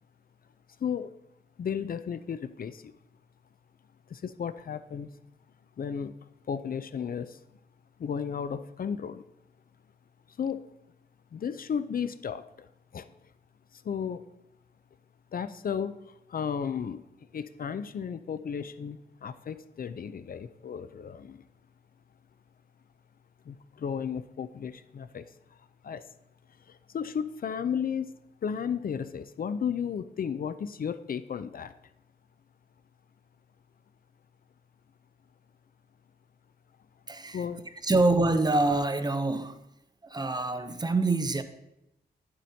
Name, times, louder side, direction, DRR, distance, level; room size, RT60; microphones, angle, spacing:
voice 1, 0.8-1.1 1.6-2.9 4.1-5.1 5.8-6.1 6.5-7.4 8.0-9.2 10.4-10.7 11.3-12.7 12.9-13.1 13.7-14.2 15.3-17.0 17.3-21.4 23.5-25.2 25.8-26.1 26.7-31.7 37.3-38.0, left 7 dB, 55° left, 0.4 m, -34 dB
voice 2, 37.1-37.4 37.8-39.6 40.0-41.4, right 2 dB, 25° right, 0.5 m, -26 dB
10.0 x 7.5 x 2.7 m
wide cardioid pair, 85°, 18 cm